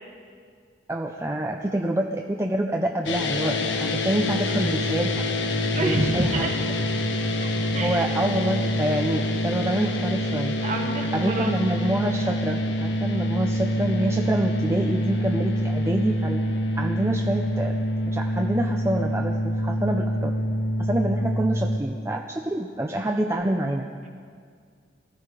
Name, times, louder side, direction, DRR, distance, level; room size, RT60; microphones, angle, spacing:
voice 1, 0.9-5.3 5.8-6.5 7.8-10.5 11.1-16.4 16.7-17.8 18.1-20.3 20.8-23.9, right 1 dB, 15° right, 3 dB, 0.5 m, -27 dB
sound 1, 3.1-21.8, left 1 dB, 85° left, 1.3 m, -26 dB
voice 2, 5.7-6.5 7.4-8.1 10.6-11.5, right 1 dB, 40° right, 1 dB, 1.6 m, -27 dB
18.0 x 13.5 x 4.9 m, 2.1 s
head